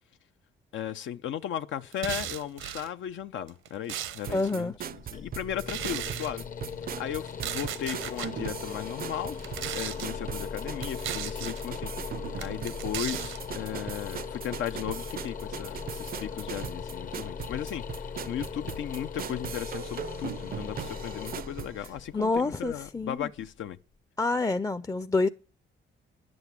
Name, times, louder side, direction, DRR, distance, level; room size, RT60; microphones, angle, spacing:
voice 1, 0.7-6.5 7.0-9.4 9.7-12.1 12.4-17.8 18.2-23.8, left 10 dB, 70° left, 0.7 m, -36 dB
sound 1, 1.9-2.9 3.5-4.5 5.6-6.3 7.3-8.3 9.3-10.1 10.8-11.6 12.4-13.4, right 11 dB, 85° right, 1.0 m, -36 dB
sound 2, 4.2-21.9, right 9 dB, 50° right, 0.5 m, -40 dB
voice 2, 4.3-4.8 22.1-23.3 24.2-25.3, left 3 dB, 15° left, 0.6 m, -27 dB
sound 3, 4.8-23.7, left 6 dB, 45° left, 0.9 m, -39 dB
11.0 x 7.9 x 8.3 m
cardioid pair, 90°, 20 cm